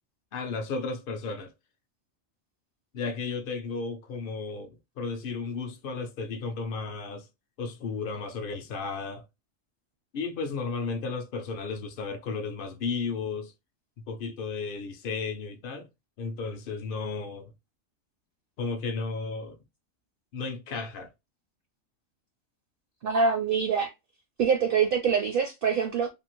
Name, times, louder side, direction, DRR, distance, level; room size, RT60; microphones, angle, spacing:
voice 1, 0.3-1.5 2.9-7.3 7.6-9.2 10.1-13.5 14.1-15.9 16.2-17.5 18.6-19.6 20.3-21.1, left 4 dB, 65° left, 0.5 m, -34 dB
voice 2, 23.0-23.9 24.4-26.1, right 6 dB, 65° right, 0.6 m, -24 dB
2.6 x 2.4 x 2.9 m
omnidirectional pair, 1.4 m